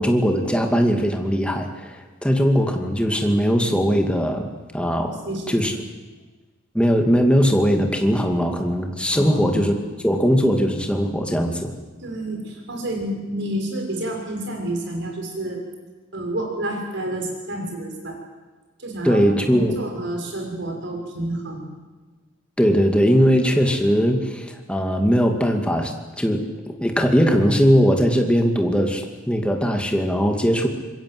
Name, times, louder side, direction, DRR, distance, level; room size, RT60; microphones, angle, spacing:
voice 1, 0.0-5.7 6.7-9.7 10.0-11.7 19.0-19.7 22.6-30.7, equal, 5° left, 4 dB, 2.4 m, -20 dB
voice 2, 5.1-5.6 9.1-9.7 10.0-10.1 12.0-15.6 16.1-18.2 18.8-21.7, right 1 dB, 60° right, 2 dB, 6.5 m, -29 dB
26.0 x 22.0 x 8.0 m, 1.3 s
head